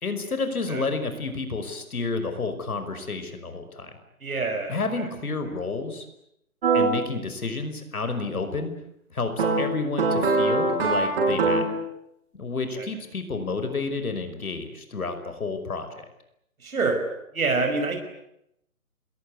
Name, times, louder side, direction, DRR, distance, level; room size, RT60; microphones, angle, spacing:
voice 1, 0.0-4.0 4.7-6.1 6.7-8.7 9.1-11.8 12.4-15.9, left 3 dB, 75° left, 8 dB, 5.5 m, -30 dB
voice 2, 4.2-5.0 12.8-12.9 16.6-17.0 17.3-18.0, right 3 dB, 70° right, 4 dB, 5.6 m, -26 dB
sound 1, 6.6-6.9 9.4-11.8, right 3 dB, 40° right, 7.9 m, -22 dB
29.0 x 21.0 x 9.6 m, 0.79 s
hypercardioid pair, 170°, 44 cm